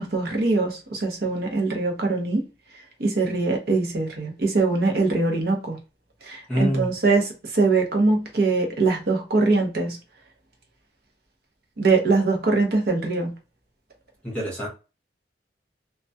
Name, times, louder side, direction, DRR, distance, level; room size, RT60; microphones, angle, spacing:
voice 1, 0.0-2.4 3.0-5.8 6.2-10.0 11.8-13.3, right 3 dB, 55° right, 0.7 m, -22 dB
voice 2, 6.5-6.9 14.2-14.7, equal, 5° left, 0.8 m, -25 dB
2.2 x 2.2 x 2.6 m
head